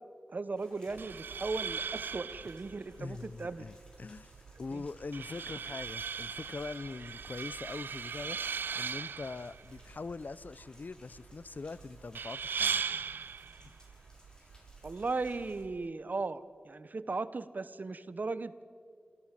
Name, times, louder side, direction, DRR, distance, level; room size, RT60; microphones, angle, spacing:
voice 1, 0.3-3.7 4.7-4.8 14.8-18.6, right 3 dB, 55° right, 1.0 m, -37 dB
Rain, 0.6-15.6, equal, 25° left, 6.5 m, -62 dB
sound 1, 0.9-15.9, right 6 dB, 85° right, 0.5 m, -39 dB
voice 2, 3.0-4.3 4.6-12.8, left 3 dB, 60° left, 0.6 m, -42 dB
27.5 x 17.0 x 7.6 m
cardioid pair, 40°, 3 cm